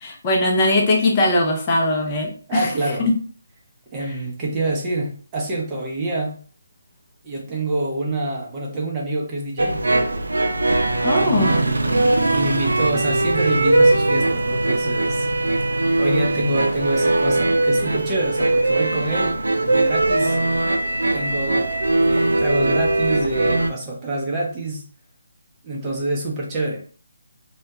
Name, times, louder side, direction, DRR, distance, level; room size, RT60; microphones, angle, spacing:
voice 1, 0.0-2.7 3.0-3.1 11.0-11.5, left 2 dB, 25° left, -1 dB, 0.5 m, -20 dB
voice 2, 2.5-3.1 3.9-6.4 7.2-9.8 11.2-15.3 15.6-20.4 21.1-21.7 22.0-24.8 25.6-26.8, right 2 dB, 20° right, -2 dB, 0.6 m, -26 dB
sound 1, 9.6-23.7, right 2 dB, 90° right, 0.4 m, -20 dB
2.3 x 2.1 x 2.8 m, 0.41 s
figure-of-eight pair, 160°, 0 cm